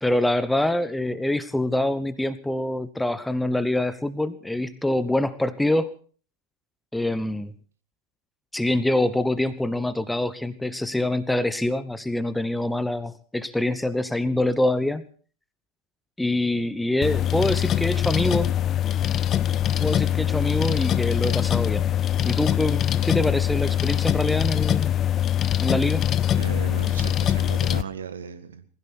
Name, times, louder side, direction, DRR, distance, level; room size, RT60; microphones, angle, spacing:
voice 1, 0.0-5.9 6.9-7.5 8.5-15.0 16.2-18.5 19.8-21.9 22.2-24.9 25.6-26.0, left 1 dB, 5° left, 14 dB, 1.0 m, -25 dB
sound 1, 17.0-27.8, left 11 dB, 30° left, 0.7 m, -23 dB
voice 2, 26.4-28.7, right 7 dB, 65° right, 11 dB, 1.6 m, -36 dB
20.5 x 16.0 x 4.3 m, 0.42 s
figure-of-eight pair, 90°, 0 cm